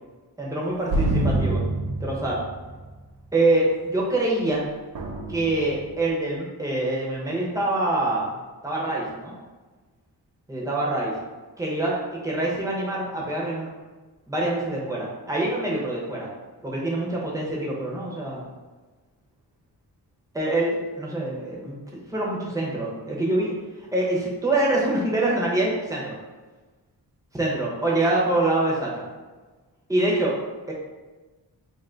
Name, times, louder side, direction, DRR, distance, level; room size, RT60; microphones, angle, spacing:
voice 1, 0.4-1.6 2.0-2.4 3.3-4.7 5.3-8.3 8.6-9.3 10.5-11.1 11.6-13.7 14.3-16.3 16.6-18.5 20.3-21.8 22.1-23.5 23.9-26.2 27.3-29.0 29.9-30.4 30.7-30.8, right 2 dB, 10° right, -4 dB, 0.7 m, -25 dB
sound 1, 0.9-2.7 4.9-5.9, right 2 dB, 55° right, 0.6 m, -25 dB
2.8 x 2.6 x 4.3 m, 1.3 s
wide cardioid pair, 160°, 41 cm